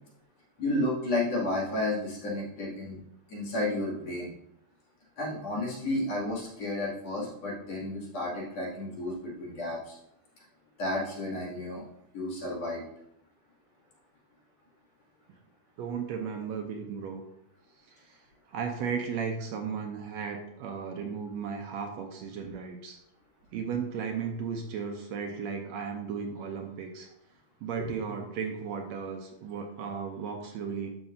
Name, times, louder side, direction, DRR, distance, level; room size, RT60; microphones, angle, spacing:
voice 1, 0.6-3.0 3.3-4.3 5.2-10.0 10.8-11.8 12.1-12.8 27.8-27.9, left 1 dB, 55° left, -6 dB, 3.6 m, -32 dB
voice 2, 15.8-17.2 17.9-23.0 23.5-27.1 27.6-30.9, right 6 dB, 75° right, 3 dB, 1.8 m, -35 dB
13.0 x 6.0 x 2.7 m, 0.78 s
omnidirectional pair, 3.5 m